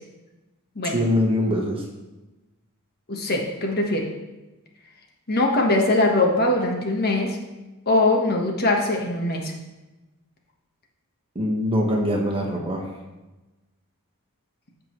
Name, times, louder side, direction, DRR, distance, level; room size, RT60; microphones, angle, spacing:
voice 1, 0.8-1.8 11.3-12.8, left 1 dB, 25° right, 0 dB, 1.4 m, -23 dB
voice 2, 3.1-4.1 5.3-7.4 7.9-9.5, left 2 dB, 45° left, 1 dB, 1.3 m, -21 dB
14.5 x 5.3 x 3.2 m, 1.1 s
head